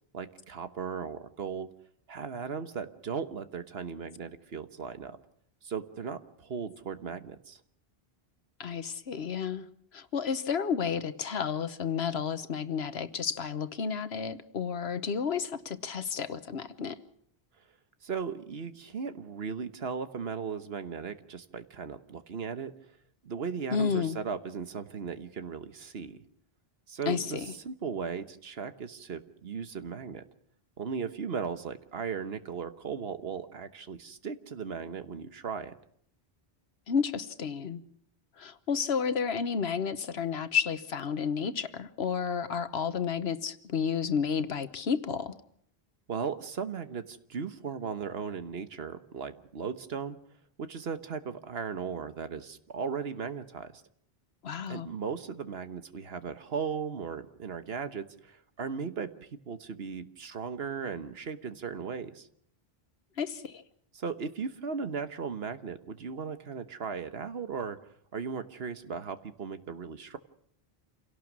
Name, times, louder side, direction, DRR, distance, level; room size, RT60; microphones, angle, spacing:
voice 1, 0.1-1.7 2.1-5.2 5.6-7.6 18.0-22.7 23.2-26.2 26.9-30.2 30.8-35.7 46.1-50.2 50.6-53.7 54.7-62.3 63.9-67.8 68.1-70.2, right 6 dB, 80° right, 10 dB, 1.4 m, -37 dB
voice 2, 8.6-9.7 9.9-17.0 23.7-24.2 27.1-27.5 36.9-37.8 38.4-45.3 54.4-54.9 63.2-63.6, left 6 dB, 85° left, 12 dB, 1.3 m, -31 dB
27.5 x 17.5 x 6.2 m, 0.68 s
omnidirectional pair, 1.0 m